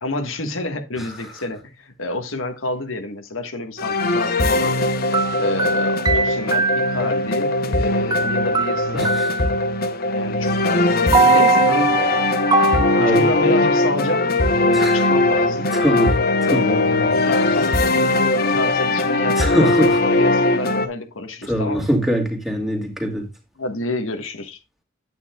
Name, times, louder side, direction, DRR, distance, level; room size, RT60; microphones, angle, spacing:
voice 1, 0.0-4.8 5.4-9.2 10.1-12.3 13.1-15.7 16.5-16.7 17.0-21.8 23.6-24.6, left 2 dB, 80° left, 1.6 m, -29 dB
sound 1, 3.8-20.9, left 2 dB, 50° left, 1.0 m, -20 dB
sound 2, 4.1-4.3 5.1-7.1 8.1-9.7 11.1-13.6, right 4 dB, 20° right, 0.5 m, -22 dB
voice 2, 8.9-9.3 12.9-13.3 14.7-15.1 15.7-16.2 16.4-17.1 19.4-20.0 21.4-23.3, equal, ahead, 2.3 m, -23 dB
9.6 x 8.9 x 2.3 m
head